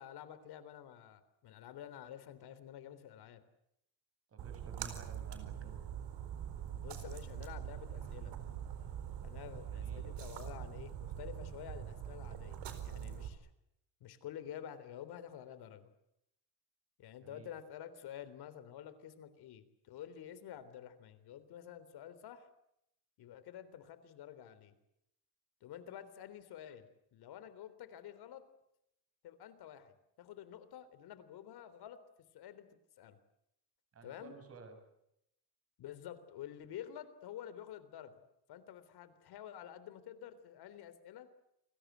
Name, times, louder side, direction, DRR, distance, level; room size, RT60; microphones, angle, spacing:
voice 1, 0.0-3.4 6.8-8.3 9.2-13.5 14.0-15.9 17.0-22.5 23.2-24.7 25.6-28.4 29.2-32.0 32.3-32.7 33.0-33.2 34.0-34.3 35.8-38.2 38.5-41.3, left 10 dB, 70° left, 13 dB, 3.6 m, -50 dB
voice 2, 4.3-5.8 9.7-10.1 17.2-17.5 33.9-34.8, right 5 dB, 35° right, 7 dB, 6.4 m, -53 dB
Splash splatter, 4.4-13.3, right 9 dB, 80° right, 4.4 m, -43 dB
29.5 x 21.5 x 8.1 m, 0.79 s
cardioid pair, 165°, 40 cm